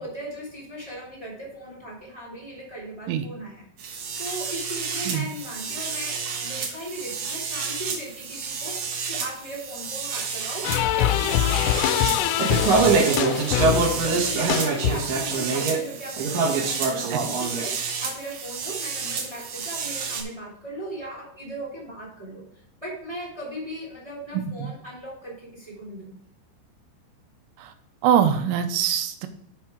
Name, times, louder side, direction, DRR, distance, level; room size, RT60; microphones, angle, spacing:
voice 1, 0.0-6.1 6.4-22.4 22.8-26.2, right 1 dB, 10° right, -6 dB, 1.4 m, -38 dB
sound 1, 3.8-20.2, right 4 dB, 70° right, 2.1 m, -27 dB
sound 2, 10.6-15.3, left 12 dB, 85° left, 3.1 m, -24 dB
voice 2, 24.3-24.7 27.6-27.7 28.0-29.3, right 9 dB, 85° right, 7 dB, 3.2 m, -23 dB
7.3 x 5.9 x 4.8 m, 0.67 s
omnidirectional pair, 5.9 m